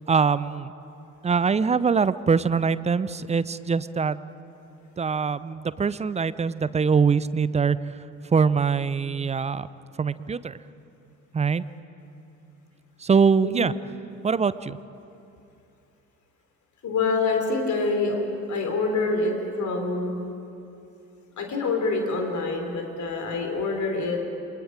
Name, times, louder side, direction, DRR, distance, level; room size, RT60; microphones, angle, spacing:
voice 1, 0.1-0.7 1.2-4.2 5.0-8.0 8.3-9.7 10.0-10.6 11.3-11.7 13.0-13.7 14.2-14.8, right 5 dB, 15° right, 17 dB, 0.6 m, -23 dB
voice 2, 16.8-18.2 18.5-20.3 21.4-24.2, left 3 dB, 40° left, 3 dB, 4.0 m, -26 dB
28.5 x 24.0 x 5.0 m, 2.7 s
figure-of-eight pair, 50°, 43 cm